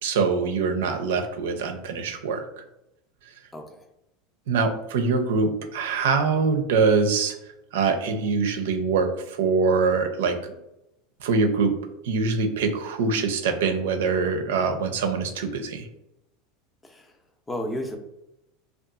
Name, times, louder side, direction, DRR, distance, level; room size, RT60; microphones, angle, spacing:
voice 1, 0.0-2.4 4.5-7.3 7.7-10.6 11.2-11.7 12.0-15.9, right 4 dB, 80° right, 6 dB, 0.4 m, -24 dB
voice 2, 3.5-3.9 16.8-17.2 17.5-18.0, left 1 dB, 15° left, 4 dB, 0.5 m, -33 dB
2.7 x 2.3 x 2.3 m, 0.86 s
supercardioid pair, 105°, 0 cm